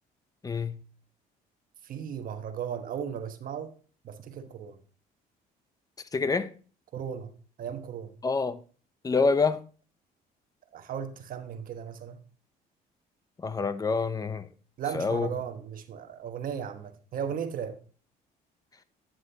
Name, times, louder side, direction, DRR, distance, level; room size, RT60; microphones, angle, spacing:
voice 1, 0.4-0.8 6.1-6.5 8.2-8.6 9.0-9.6 13.4-14.5 14.9-15.3, left 4 dB, 20° left, 0.6 m, -26 dB
voice 2, 1.8-3.7 4.0-4.8 6.9-8.2 10.7-12.2 14.8-17.8, right 8 dB, 55° right, 1.2 m, -36 dB
9.4 x 7.5 x 2.8 m
cardioid pair, 110°, 17 cm